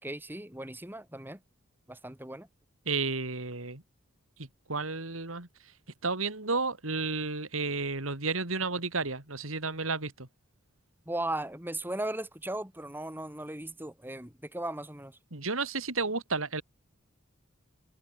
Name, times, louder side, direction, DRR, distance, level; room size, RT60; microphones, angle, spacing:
voice 1, 0.0-1.4 1.9-2.5 11.1-15.2, right 1 dB, 10° right, 3.6 m, -37 dB
voice 2, 2.8-3.8 4.4-5.5 6.0-10.3 15.3-16.6, right 4 dB, 85° right, 3.3 m, -32 dB
head